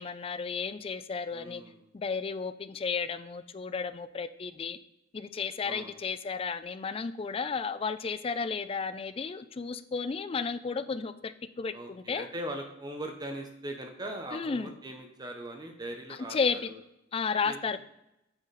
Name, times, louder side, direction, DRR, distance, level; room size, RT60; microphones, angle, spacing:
voice 1, 0.0-1.6 1.9-4.8 5.1-12.3 14.3-14.7 16.3-16.7 17.1-17.8, left 5 dB, 30° left, 12 dB, 0.4 m, -33 dB
voice 2, 1.3-1.8 5.6-6.0 11.7-16.8 17.4-17.6, right 1 dB, 20° right, 4 dB, 0.7 m, -40 dB
7.9 x 4.2 x 4.0 m, 0.87 s
head